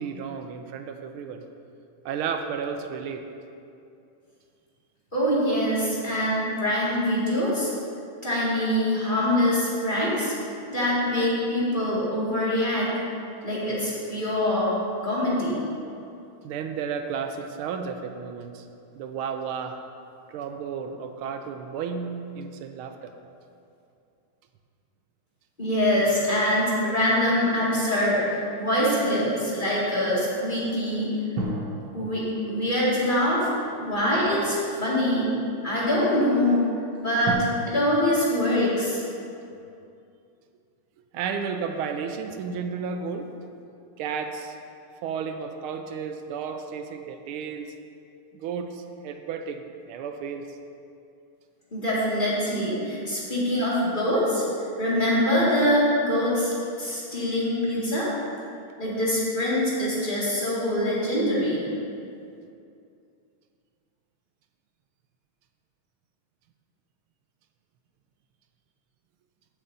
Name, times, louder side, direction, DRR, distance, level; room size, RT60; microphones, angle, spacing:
voice 1, 0.0-1.4 2.0-3.2 16.4-18.7 18.9-19.8 20.3-23.1 33.9-34.1 41.1-43.3 44.0-44.6 45.0-47.7 48.3-50.6, right 6 dB, 90° right, 6 dB, 1.5 m, -33 dB
voice 2, 5.1-7.7 8.2-10.3 10.7-12.9 13.4-14.7 15.0-15.5 25.6-31.2 31.9-33.5 33.8-35.3 35.6-36.7 37.0-39.0 51.7-54.4 54.8-58.1 58.8-61.7, left 1 dB, 25° left, -8 dB, 2.2 m, -24 dB
sound 1, 25.9-28.5 31.3-34.7 35.4-35.5 37.2-37.3, right 3 dB, 70° right, 1.7 m, -38 dB
14.0 x 7.6 x 2.7 m, 2.6 s
omnidirectional pair, 2.3 m